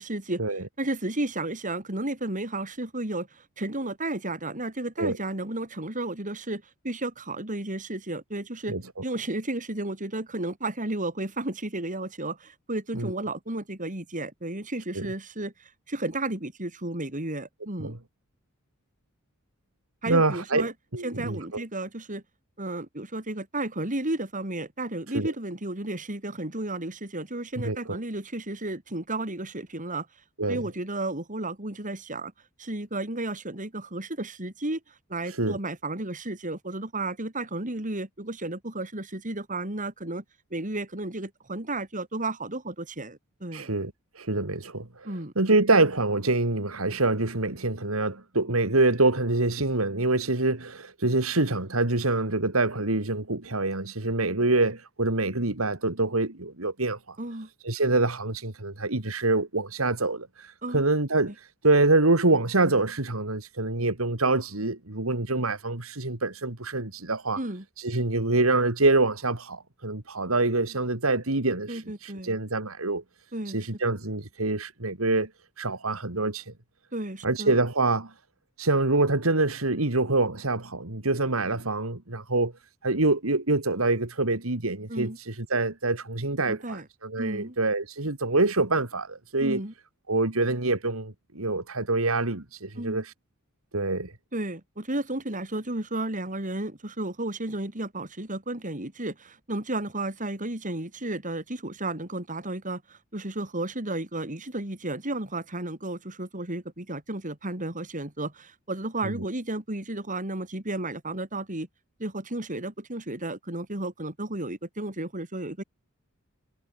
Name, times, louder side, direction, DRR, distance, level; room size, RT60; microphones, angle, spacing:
voice 1, 0.0-0.4 0.8-8.8 9.0-18.0 20.0-20.7 21.0-22.2 22.6-30.1 30.5-32.3 32.6-34.8 35.1-40.2 40.5-43.7 45.0-45.3 57.2-57.5 60.6-60.8 67.4-67.6 71.7-72.4 73.3-73.6 76.9-77.6 84.9-85.2 86.5-86.9 87.2-87.6 89.4-89.7 92.8-93.0 94.3-111.7 112.0-115.6, right 2 dB, 40° right, 4.4 m, -33 dB
voice 2, 20.1-21.6 25.1-25.3 27.6-28.0 30.4-30.6 35.4-35.6 43.5-45.1 45.4-57.2 57.6-61.3 61.6-67.4 67.8-73.0 73.5-75.3 75.6-76.5 77.2-78.1 78.6-82.5 82.8-89.6 90.1-93.1 93.7-94.1 109.0-109.2, right 2 dB, 80° right, 2.7 m, -25 dB
head